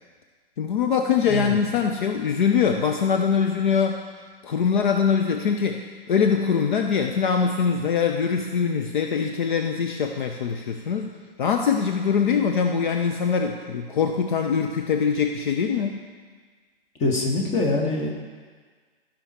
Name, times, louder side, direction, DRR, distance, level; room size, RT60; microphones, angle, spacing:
voice 1, 0.6-4.0 4.4-11.1 11.4-16.0, left 6 dB, 55° left, 4 dB, 0.8 m, -23 dB
voice 2, 1.2-1.6 17.0-18.2, left 2 dB, 20° left, 0 dB, 1.6 m, -24 dB
14.5 x 5.7 x 4.3 m, 1.5 s
figure-of-eight pair, 120°, 29 cm